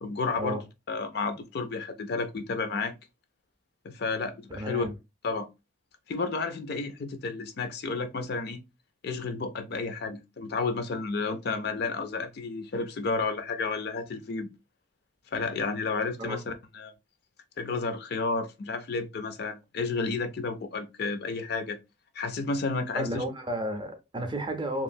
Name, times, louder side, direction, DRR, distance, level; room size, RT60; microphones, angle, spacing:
voice 1, 0.0-0.6 0.9-2.9 3.8-4.9 5.2-5.5 6.1-8.6 9.0-14.5 15.3-16.9 17.6-21.8 22.1-23.2, left 4 dB, 50° left, 0.4 m, -31 dB
voice 2, 4.6-4.9 16.2-16.4 22.9-24.8, right 1 dB, 25° right, 0.5 m, -32 dB
2.9 x 2.4 x 2.5 m
head